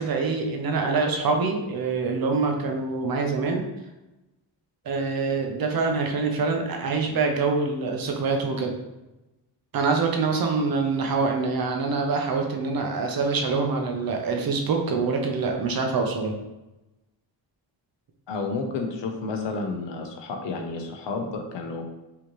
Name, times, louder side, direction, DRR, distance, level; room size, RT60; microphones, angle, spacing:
voice 1, 0.0-3.6 4.9-8.8 9.7-16.4, right 4 dB, 55° right, 3 dB, 0.7 m, -25 dB
voice 2, 18.3-21.8, left 3 dB, 75° left, 3 dB, 0.8 m, -31 dB
5.1 x 2.8 x 3.0 m, 1.0 s
wide cardioid pair, 170°, 44 cm